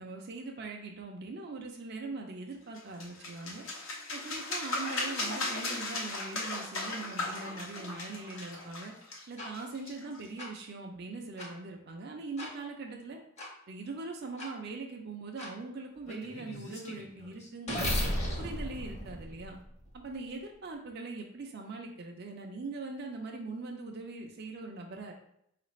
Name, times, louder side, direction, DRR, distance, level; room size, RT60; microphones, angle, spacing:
voice 1, 0.0-3.7 4.1-8.9 9.3-13.2 13.7-18.0 18.4-19.6 19.9-25.1, right 3 dB, 55° right, 1 dB, 0.5 m, -41 dB
sound 1, 2.7-10.3, left 2 dB, 85° left, 0.9 m, -37 dB
sound 2, 9.4-9.5 10.4-10.5 11.4-11.5 12.4-12.5 13.4-13.5 14.4-14.5 15.4-15.5 16.1-20.0, equal, 35° left, 0.9 m, -36 dB
4.8 x 2.5 x 3.1 m, 0.73 s
head